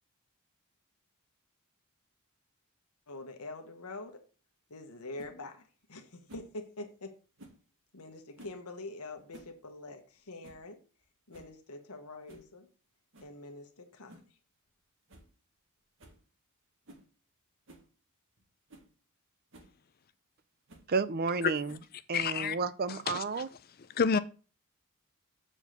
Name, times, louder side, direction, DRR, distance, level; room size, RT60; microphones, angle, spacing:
voice 1, 3.1-4.2 4.7-7.2 7.9-10.8 11.3-12.7 13.2-14.2, left 2 dB, 85° left, 1.3 m, -45 dB
sound 1, 5.2-5.3 6.3-6.5 7.4-7.6 8.3-8.6 9.1-9.6 9.8-9.9 10.4-10.7 11.0-11.1 11.3-11.6 12.3-12.5 13.1-13.4 14.1-14.3 14.7-14.8 15.1-15.3 15.6-15.7 16.0-16.2 16.8-17.1 17.7-17.9 18.4-18.5 18.7-18.9 19.5-19.7 20.7-20.9 21.7-22.0, right 1 dB, 60° right, 1.7 m, -55 dB
voice 2, 20.9-21.8 22.1-23.5, right 4 dB, 45° right, 0.5 m, -31 dB
voice 3, 22.1-22.6 23.1-23.2 24.0-24.2, left 5 dB, 45° left, 0.5 m, -28 dB
7.1 x 4.5 x 6.7 m
head